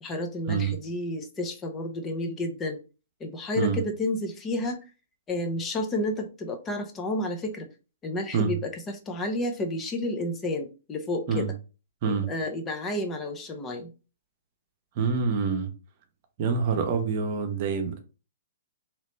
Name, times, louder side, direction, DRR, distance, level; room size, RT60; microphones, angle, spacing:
voice 1, 0.0-2.8 3.2-4.8 5.3-7.7 8.0-11.5 12.0-13.9, left 1 dB, 20° left, 0.7 m, -31 dB
voice 2, 15.0-15.7 16.4-18.0, right 5 dB, 45° right, 0.8 m, -26 dB
3.0 x 3.0 x 3.1 m
hypercardioid pair, 130°, 0 cm